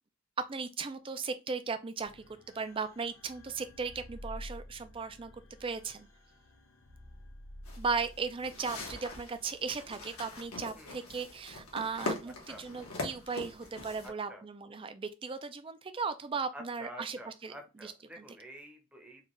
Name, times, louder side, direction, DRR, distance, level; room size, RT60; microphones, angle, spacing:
voice 1, 0.4-2.2 2.5-5.3 5.6-6.1 7.8-17.5 17.8-17.9 18.2-18.3, right 5 dB, 25° right, 0.4 m, -37 dB
sound 1, 2.0-9.4, left 1 dB, 60° left, 0.8 m, -51 dB
sound 2, 7.6-14.1, left 2 dB, 80° left, 1.3 m, -42 dB
voice 2, 14.0-14.4 16.5-19.2, right 1 dB, 5° right, 0.7 m, -49 dB
4.3 x 2.4 x 3.0 m
head